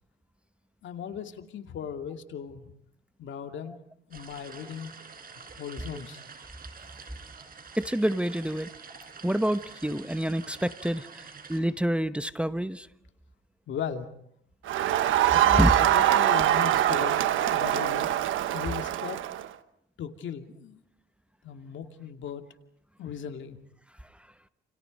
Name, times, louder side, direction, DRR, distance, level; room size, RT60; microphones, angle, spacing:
voice 1, 0.8-2.6 3.2-3.8 4.1-4.9 5.4-6.2 13.7-14.1 15.3-18.1 18.5-19.2 20.0-20.8 21.4-22.4 23.0-23.6, left 8 dB, 70° left, 2.5 m, -37 dB
sound 1, 4.1-11.6, right 5 dB, 45° right, 6.4 m, -47 dB
voice 2, 7.8-8.7 9.2-12.9 15.6-15.7, right 1 dB, 5° right, 1.0 m, -27 dB
Crowd, 14.7-19.5, right 12 dB, 80° right, 1.3 m, -23 dB
29.5 x 29.0 x 5.4 m
cardioid pair, 90°, 20 cm